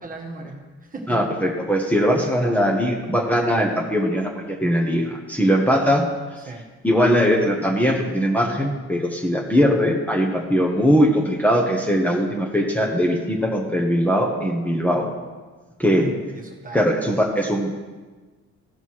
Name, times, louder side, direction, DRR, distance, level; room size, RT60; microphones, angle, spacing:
voice 1, 0.0-0.6 0.9-1.2 6.5-6.6 15.9-16.9 17.3-17.5, right 2 dB, 30° right, 1 dB, 1.8 m, -35 dB
voice 2, 1.1-6.1 6.8-15.1 15.8-16.1 16.7-17.8, equal, 5° left, -2 dB, 1.3 m, -20 dB
15.5 x 5.4 x 4.8 m, 1.3 s
cardioid pair, 90°, 30 cm